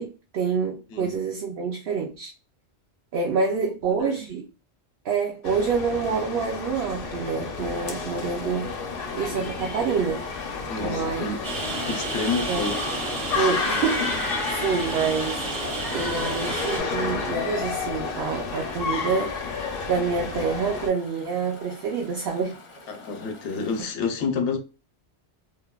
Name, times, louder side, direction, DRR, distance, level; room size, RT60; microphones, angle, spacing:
voice 1, 0.0-2.3 3.1-4.4 5.0-8.7 9.1-10.3 10.8-11.3 12.5-12.6 13.3-15.4 15.9-19.4 19.9-22.6, right 5 dB, 65° right, 0.7 m, -27 dB
voice 2, 3.9-4.2 10.7-11.4 11.8-12.9 22.9-24.6, left 4 dB, 85° left, 0.9 m, -29 dB
sound 1, 5.4-20.9, left 4 dB, 60° left, 0.8 m, -31 dB
Chatter / Stream, 7.6-23.9, left 2 dB, 45° left, 0.4 m, -47 dB
Rain, 11.4-16.8, right 3 dB, 85° right, 1.4 m, -32 dB
3.2 x 2.0 x 2.2 m
omnidirectional pair, 1.1 m